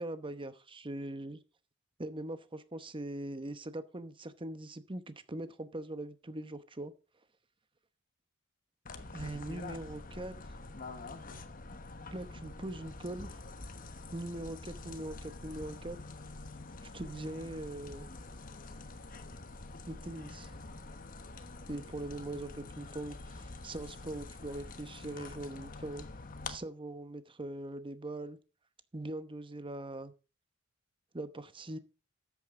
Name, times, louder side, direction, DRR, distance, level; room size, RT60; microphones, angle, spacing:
voice 1, 0.0-1.4 2.0-6.9 9.1-10.6 12.1-13.4 14.1-16.0 16.8-18.1 19.9-20.5 21.7-26.0 26.5-28.4 28.9-30.1 31.1-31.8, right 1 dB, 25° right, 12 dB, 0.9 m, -41 dB
almuerzo al aire libre, 8.8-26.6, left 3 dB, 40° left, 1.2 m, -46 dB
13.0 x 8.6 x 3.7 m, 0.34 s
head